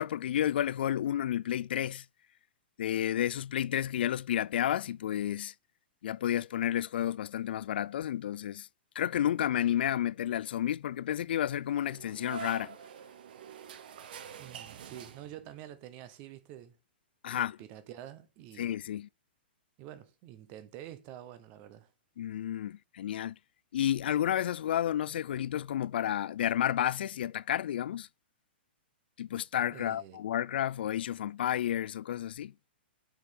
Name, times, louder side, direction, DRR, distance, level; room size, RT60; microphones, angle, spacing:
voice 1, 0.0-2.0 2.8-5.5 6.0-8.7 9.0-12.8 17.2-17.6 18.6-19.1 22.2-23.3 23.7-28.1 29.2-32.5, left 11 dB, 60° left, 0.4 m, -31 dB
sound 1, 11.7-15.6, right 8 dB, 55° right, 1.1 m, -46 dB
voice 2, 14.4-16.8 17.3-18.8 19.8-21.9 29.7-30.2, right 12 dB, 25° right, 1.0 m, -48 dB
6.9 x 5.6 x 6.6 m
hypercardioid pair, 170°, 6 cm